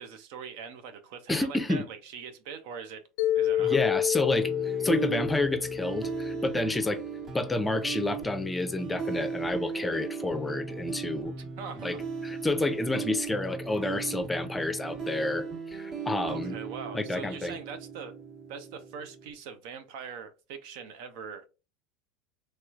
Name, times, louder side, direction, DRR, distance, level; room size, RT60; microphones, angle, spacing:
voice 1, 0.0-3.0 3.3-3.9 11.6-12.0 16.2-18.1 18.5-21.5, right 6 dB, 65° right, 0.6 m, -42 dB
voice 2, 1.3-1.9 3.6-7.0 7.3-11.3 11.8-11.9 12.2-16.6 16.9-17.6, left 2 dB, 10° left, 0.6 m, -29 dB
Mallet percussion, 3.2-7.3, left 11 dB, 75° left, 0.4 m, -30 dB
sound 1, 4.3-19.3, right 5 dB, 40° right, 1.3 m, -37 dB
3.2 x 3.0 x 2.4 m
hypercardioid pair, 95°, 0 cm